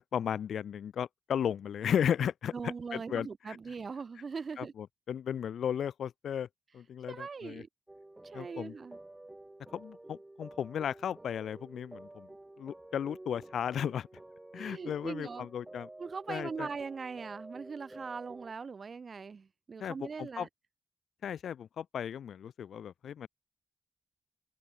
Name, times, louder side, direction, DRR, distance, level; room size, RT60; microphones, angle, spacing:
voice 1, 0.0-3.6 4.6-6.5 6.7-7.6 8.3-8.7 9.7-12.3 12.6-14.1 14.5-15.9 16.3-16.7 19.8-20.5 21.2-23.3, left 8 dB, 80° left, 0.4 m, -35 dB
voice 2, 2.5-4.7 7.1-7.7 8.2-9.0 14.6-15.5 16.0-20.5, right 5 dB, 45° right, 4.7 m, -41 dB
sound 1, 7.9-18.5, right 2 dB, 15° right, 2.2 m, -50 dB
cardioid pair, 100°, 0 cm